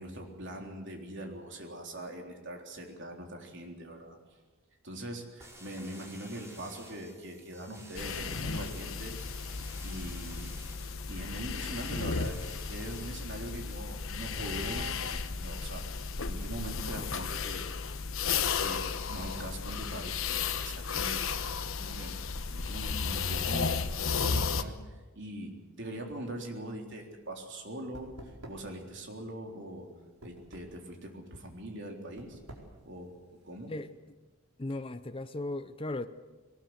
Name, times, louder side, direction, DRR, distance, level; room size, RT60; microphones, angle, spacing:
voice 1, 0.0-4.2 4.8-9.2 9.8-10.6 11.1-15.8 16.3-17.7 18.6-22.2 22.5-28.1 28.5-29.9 30.2-32.4 32.9-33.2 33.4-33.7, right 1 dB, 55° right, 3.7 m, -42 dB
sound 1, 5.4-13.1, right 1 dB, 10° right, 4.0 m, -52 dB
sound 2, 8.0-24.6, left 5 dB, 60° left, 1.1 m, -34 dB
sound 3, 26.3-33.9, right 1 dB, 80° right, 4.6 m, -52 dB
voice 2, 34.6-36.1, left 2 dB, 25° left, 0.6 m, -36 dB
21.5 x 19.0 x 8.0 m
head